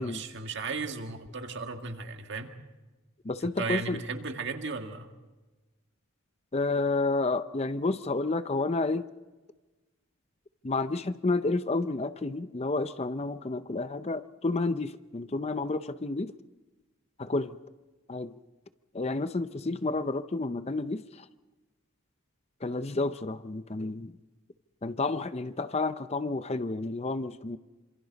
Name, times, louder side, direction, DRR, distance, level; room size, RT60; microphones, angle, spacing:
voice 1, 0.0-2.5 3.4-5.1, right 4 dB, 55° right, 5 dB, 1.9 m, -35 dB
voice 2, 3.2-4.0 6.5-9.1 10.6-16.3 17.2-17.6 18.1-18.4 18.9-21.3 22.6-24.1 24.8-27.6, left 3 dB, 30° left, 12 dB, 0.6 m, -30 dB
28.0 x 26.5 x 4.1 m, 1.2 s
head